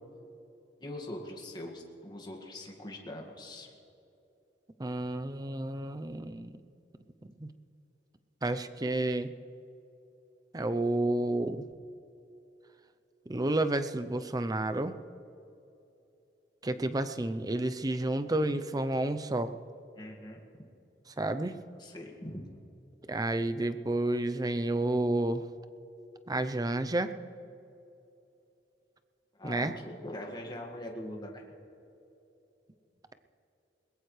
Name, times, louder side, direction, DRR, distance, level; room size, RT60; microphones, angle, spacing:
voice 1, 0.8-3.7 20.0-20.6 21.4-21.5 21.8-22.5 29.3-31.4, left 1 dB, 25° left, 1 dB, 1.9 m, -42 dB
voice 2, 4.8-6.6 7.4-7.5 8.4-9.3 10.5-11.6 13.3-15.0 16.6-19.5 21.2-21.6 23.1-25.4 26.3-27.1 29.4-29.7, right 2 dB, 20° right, 10 dB, 0.6 m, -30 dB
22.0 x 20.0 x 3.3 m, 2.9 s
head